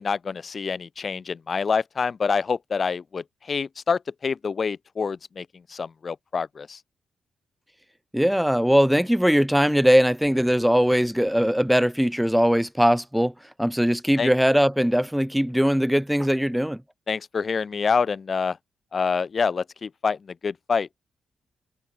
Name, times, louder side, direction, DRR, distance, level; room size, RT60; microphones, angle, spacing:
voice 1, 0.0-6.8 14.2-14.3 17.1-18.6 18.9-20.2 20.4-20.9, left 5 dB, 40° left, 0.8 m, -26 dB
voice 2, 8.1-13.3 13.6-16.8, equal, ahead, 5.3 m, -20 dB
cardioid pair, 100°, 0 cm